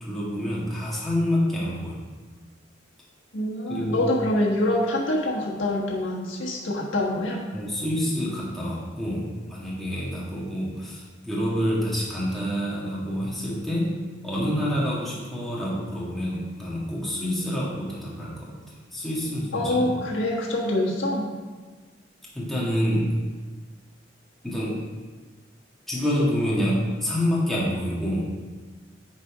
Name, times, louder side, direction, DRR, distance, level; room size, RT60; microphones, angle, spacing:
voice 1, 0.0-2.0 3.7-4.0 7.5-13.9 14.2-18.6 18.9-19.9 22.3-23.2 24.4-24.8 25.9-28.3, equal, ahead, -7 dB, 1.8 m, -27 dB
voice 2, 3.3-7.4 19.5-21.3, left 1 dB, 80° left, -2 dB, 1.4 m, -25 dB
9.3 x 4.1 x 4.9 m, 1.4 s
head